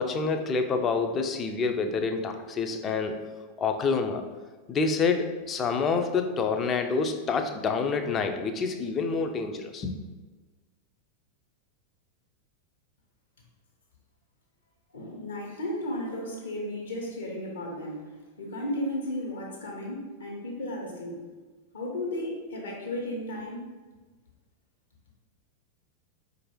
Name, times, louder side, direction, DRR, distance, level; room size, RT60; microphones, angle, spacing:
voice 1, 0.0-3.2 3.6-4.2 4.7-9.9, left 4 dB, 25° left, 6 dB, 0.4 m, -27 dB
voice 2, 14.9-21.2 21.7-23.7, left 1 dB, 65° left, -1 dB, 0.9 m, -34 dB
4.5 x 2.5 x 3.0 m, 1.3 s
figure-of-eight pair, 90°, 0 cm